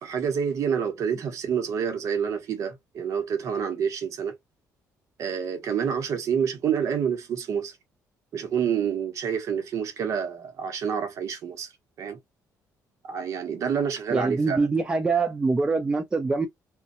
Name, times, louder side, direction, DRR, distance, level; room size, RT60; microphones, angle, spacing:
voice 1, 0.0-4.4 5.2-7.8 8.3-11.7 12.0-12.2 13.0-14.7, right 7 dB, 50° right, 0.8 m, -28 dB
voice 2, 14.1-16.5, right 3 dB, 15° right, 0.3 m, -24 dB
2.5 x 2.2 x 2.6 m
cardioid pair, 155°, 7 cm